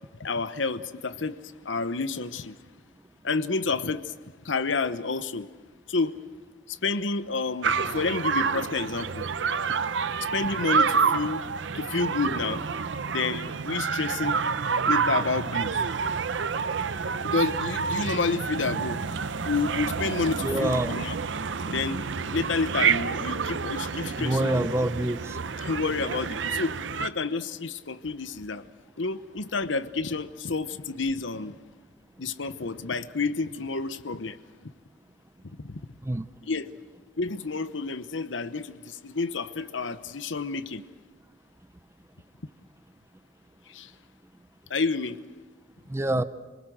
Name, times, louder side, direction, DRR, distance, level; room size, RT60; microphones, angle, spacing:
voice 1, 0.2-2.5 3.2-4.1 4.4-5.5 5.9-6.1 6.7-9.2 10.2-11.4 11.7-12.6 13.1-14.4 14.9-15.8 17.2-19.1 19.4-21.1 21.7-24.7 25.6-28.6 29.0-31.6 32.2-34.4 35.6-35.8 36.5-36.7 37.2-40.8 43.7-43.9 44.7-45.2, left 4 dB, 80° left, 13 dB, 1.0 m, -29 dB
sound 1, 7.6-27.1, right 5 dB, 70° right, 0.7 m, -28 dB
voice 2, 20.4-21.0 24.2-25.4 36.0-36.3 45.9-46.2, right 1 dB, 15° right, 13 dB, 0.7 m, -26 dB
26.5 x 20.0 x 7.8 m, 1.4 s
head